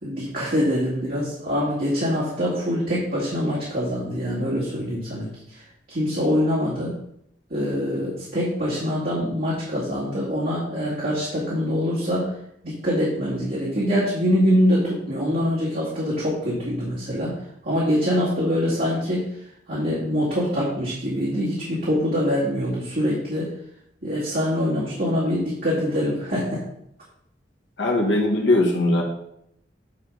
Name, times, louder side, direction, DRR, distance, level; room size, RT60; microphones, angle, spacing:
voice 1, 0.0-5.6 5.9-6.9 7.5-12.3 12.6-17.4 17.6-19.3 19.7-23.5 24.0-26.6, equal, 60° right, -9 dB, 2.5 m, -24 dB
voice 2, 27.8-29.0, left 2 dB, 80° left, -1 dB, 1.6 m, -20 dB
9.5 x 5.1 x 3.9 m, 0.75 s
head